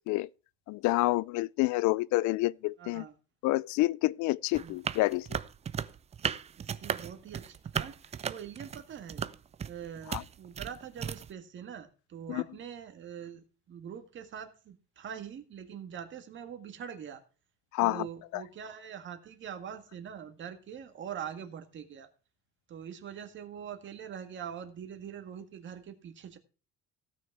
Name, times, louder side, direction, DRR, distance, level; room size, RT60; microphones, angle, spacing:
voice 1, 0.7-3.0 3.4-5.3 10.1-10.2 12.3-12.4 17.7-18.0 18.3-18.4, left 19 dB, 70° left, 0.4 m, -28 dB
voice 2, 2.8-3.2 4.6-4.8 6.6-9.2 9.6-17.2 17.8-22.1 22.7-26.4, right 8 dB, 40° right, 1.9 m, -43 dB
sound 1, 4.5-11.3, right 8 dB, 20° right, 0.4 m, -36 dB
17.0 x 6.3 x 4.6 m
cardioid pair, 160°, 30 cm